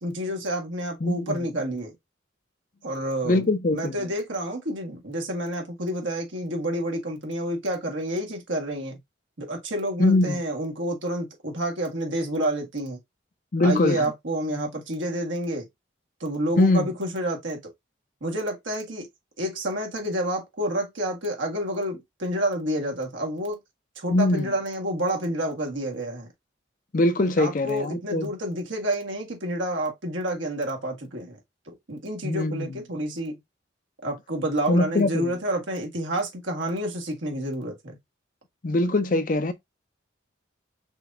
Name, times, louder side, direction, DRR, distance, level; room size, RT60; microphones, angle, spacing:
voice 1, 0.0-1.9 2.8-9.0 9.4-13.0 13.6-15.7 16.2-17.7 18.2-19.1 19.4-23.6 24.0-26.3 27.4-31.4 31.7-33.4 34.0-38.0, right 1 dB, 80° right, 1.6 m, -29 dB
voice 2, 1.0-1.4 3.2-3.9 10.0-10.4 13.5-14.1 16.6-16.9 24.1-24.5 26.9-28.3 32.2-32.6 34.7-35.3 38.6-39.5, left 2 dB, 45° left, 0.5 m, -22 dB
6.1 x 2.7 x 2.4 m
head